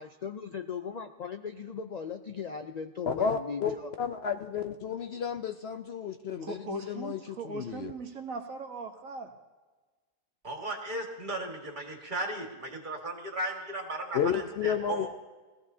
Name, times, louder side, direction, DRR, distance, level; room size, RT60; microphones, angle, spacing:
voice 1, 0.0-3.9, left 6 dB, 75° left, 0.3 m, -38 dB
voice 2, 3.1-7.9 14.1-15.1, left 7 dB, 60° left, 0.8 m, -32 dB
voice 3, 6.4-9.3, right 2 dB, 75° right, 1.6 m, -39 dB
voice 4, 10.4-15.1, right 1 dB, 35° right, 1.9 m, -36 dB
20.5 x 15.5 x 2.8 m
omnidirectional pair, 1.4 m